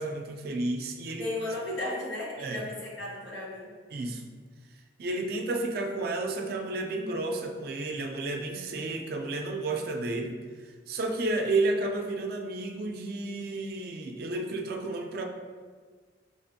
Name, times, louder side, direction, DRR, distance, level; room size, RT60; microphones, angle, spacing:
voice 1, 0.0-1.3 2.4-2.6 3.9-4.2 5.0-10.4 10.9-15.2, right 2 dB, 55° right, 3 dB, 0.4 m, -31 dB
voice 2, 1.2-3.7, left 2 dB, 75° left, -6 dB, 1.3 m, -35 dB
5.0 x 2.5 x 2.6 m, 1.5 s
head